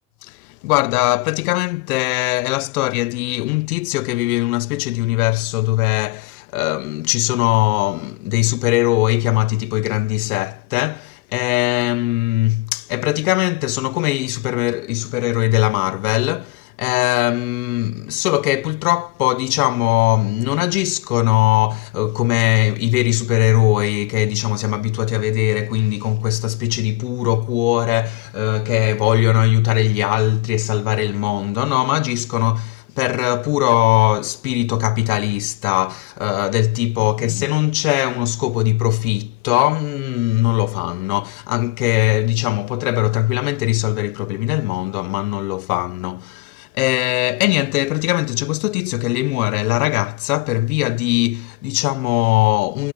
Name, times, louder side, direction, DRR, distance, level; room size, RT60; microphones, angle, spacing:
voice 1, 0.2-52.9, left 20 dB, 70° left, 1.1 m, -20 dB
hypercardioid pair, 100°, 45 cm